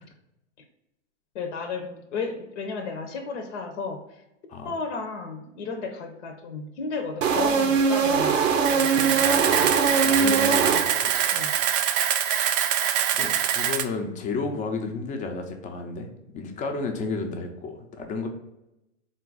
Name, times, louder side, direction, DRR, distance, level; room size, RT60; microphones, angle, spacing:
voice 1, 1.3-4.0 4.6-9.2 9.5-9.7 11.3-11.6, left 4 dB, 65° left, 5 dB, 0.8 m, -33 dB
sound 1, 7.2-11.3, right 5 dB, 85° right, 0.7 m, -22 dB
Camera, 8.6-13.8, right 10 dB, 45° right, 0.4 m, -24 dB
voice 2, 9.1-11.1 12.5-12.8 13.1-18.3, left 4 dB, 20° left, 4 dB, 0.5 m, -32 dB
3.9 x 2.5 x 3.9 m, 0.90 s
hypercardioid pair, 115°, 38 cm